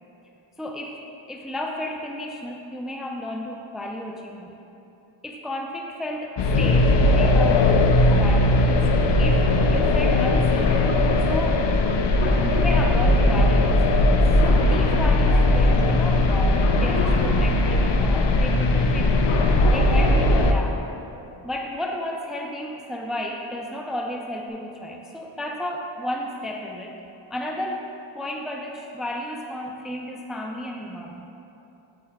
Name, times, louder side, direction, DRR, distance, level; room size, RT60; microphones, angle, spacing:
voice 1, 0.6-1.0 1.3-4.6 5.2-8.8 9.2-10.8 11.2-11.7 12.4-19.3 19.7-20.8 21.4-26.9 27.3-27.9 28.1-31.2, left 1 dB, ahead, 1 dB, 0.6 m, -33 dB
sound 1, 6.4-20.5, left 2 dB, 60° left, 0.7 m, -19 dB
Cough, 10.2-10.3 10.5-17.9 19.0-20.0 21.7-21.8 22.8-23.1 23.5-23.6 24.0-24.5, left 4 dB, 75° left, 1.3 m, -33 dB
9.6 x 8.6 x 2.3 m, 2.9 s
cardioid pair, 60°, 49 cm